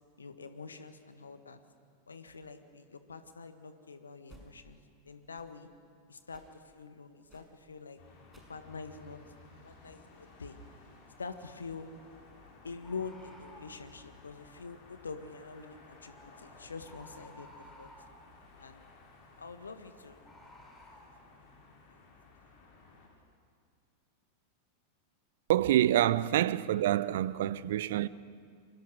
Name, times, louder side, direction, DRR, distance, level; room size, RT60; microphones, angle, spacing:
voice 1, 0.2-1.6 2.1-4.8 5.0-5.7 6.1-8.0 8.5-9.2 9.6-10.6 11.2-11.9 12.6-17.9 18.6-18.8 19.4-20.2 21.3-21.4 21.8-22.0 26.3-26.4, left 4 dB, 75° left, 1.7 m, -45 dB
sound 1, 4.2-4.5 5.2-5.6 6.2-6.6 7.2-7.6 8.2-8.6 9.2-9.3, right 2 dB, 10° right, 6.0 m, -59 dB
sound 2, 8.0-23.1, left 3 dB, 50° left, 5.9 m, -57 dB
Bird, 11.1-11.2 12.8-13.8 16.1-16.3 16.9-18.2 20.2-21.1, left 1 dB, 5° left, 5.7 m, -54 dB
voice 2, 25.5-28.1, right 12 dB, 55° right, 0.7 m, -27 dB
29.0 x 24.5 x 6.4 m
figure-of-eight pair, 90°, 0 cm